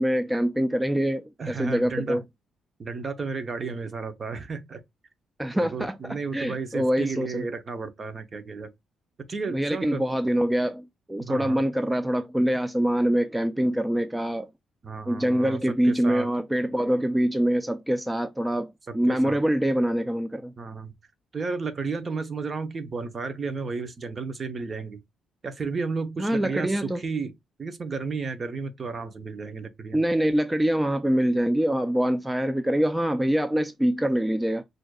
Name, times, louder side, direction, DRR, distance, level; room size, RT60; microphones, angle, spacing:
voice 1, 0.0-2.2 5.4-7.5 9.5-14.5 15.1-20.5 26.2-27.0 29.9-34.6, equal, 10° right, 0.3 m, -25 dB
voice 2, 1.4-2.2 2.8-4.8 5.6-8.7 9.3-10.0 11.2-11.6 14.8-16.3 19.1-19.4 20.6-20.9 21.3-25.0 25.4-27.3 27.6-30.0, right 4 dB, 40° right, 0.8 m, -33 dB
6.1 x 2.6 x 2.3 m
cardioid pair, 90°, 0 cm